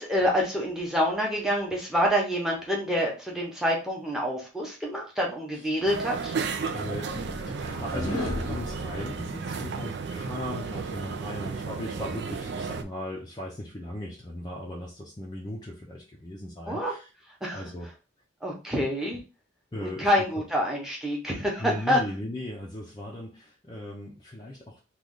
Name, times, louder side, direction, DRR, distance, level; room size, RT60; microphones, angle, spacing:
voice 1, 0.0-6.3 16.7-16.9 17.4-17.6 18.4-19.2 19.8-22.0, equal, 5° right, -1 dB, 0.9 m, -27 dB
sound 1, 5.9-12.8, right 5 dB, 55° right, 0.4 m, -33 dB
sound 2, 6.3-9.7, left 1 dB, 75° left, 0.9 m, -35 dB
voice 2, 6.7-17.1 17.5-17.9 19.7-20.1 21.6-24.8, left 1 dB, 20° left, -2 dB, 0.5 m, -37 dB
3.1 x 2.4 x 3.7 m, 0.32 s
head